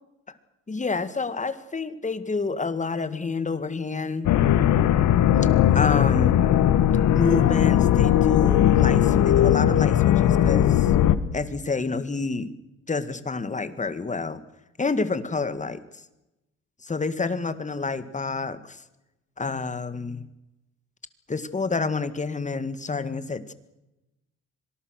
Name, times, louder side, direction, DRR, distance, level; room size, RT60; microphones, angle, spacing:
voice 1, 0.7-4.3 5.7-6.4 7.1-10.9 11.3-12.5 12.9-14.4 14.8-16.0 16.8-18.8 19.4-20.3 21.3-23.5, left 4 dB, 25° left, 13 dB, 1.9 m, -28 dB
sound 1, 4.2-11.1, left 11 dB, 75° left, 1.4 m, -19 dB
25.0 x 19.0 x 6.5 m, 0.96 s
cardioid pair, 90°, 30 cm